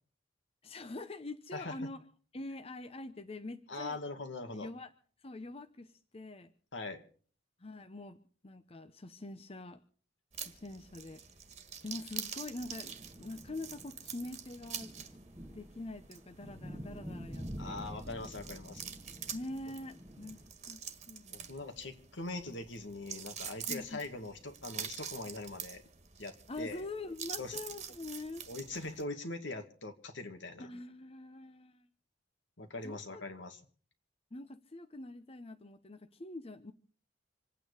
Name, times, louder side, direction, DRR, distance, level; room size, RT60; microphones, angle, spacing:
voice 1, 0.6-2.0 2.3-4.0 4.5-4.9 5.2-6.5 7.6-8.2 8.4-9.8 10.3-11.2 11.8-14.9 15.5-17.8 19.3-21.5 23.7-24.0 26.5-28.5 30.6-31.9 32.8-33.2 34.3-36.7, left 2 dB, 30° left, 9 dB, 0.8 m, -44 dB
voice 2, 3.7-4.7 6.7-7.0 17.6-18.9 21.3-25.8 26.2-26.8 27.4-27.6 28.5-30.7 32.6-33.6, left 2 dB, 70° left, 6 dB, 2.2 m, -42 dB
sound 1, 10.3-29.0, right 8 dB, 35° right, 1.7 m, -46 dB
sound 2, 12.6-20.5, equal, 15° right, 1.3 m, -48 dB
27.0 x 9.1 x 5.0 m, 0.43 s
head